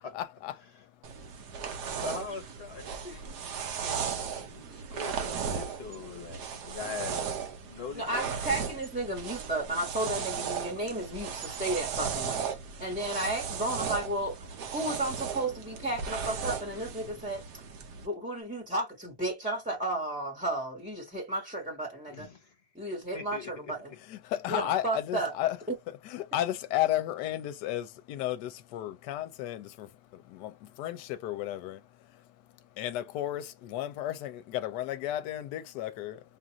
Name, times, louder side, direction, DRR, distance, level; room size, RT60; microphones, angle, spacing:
voice 1, 0.1-0.5 24.1-25.6 26.1-31.8 32.8-36.2, left 13 dB, 75° left, 1.1 m, -33 dB
sound 1, 1.0-18.1, right 7 dB, 65° right, 1.2 m, -36 dB
voice 2, 2.0-3.1 3.5-8.0 22.1-22.5 23.1-23.5, left 5 dB, 45° left, 1.0 m, -42 dB
voice 3, 7.9-12.4 12.8-17.4 18.0-22.3 22.7-23.9 24.5-25.3 25.7-25.8, right 1 dB, 5° right, 0.8 m, -33 dB
5.2 x 2.4 x 2.9 m
omnidirectional pair, 1.9 m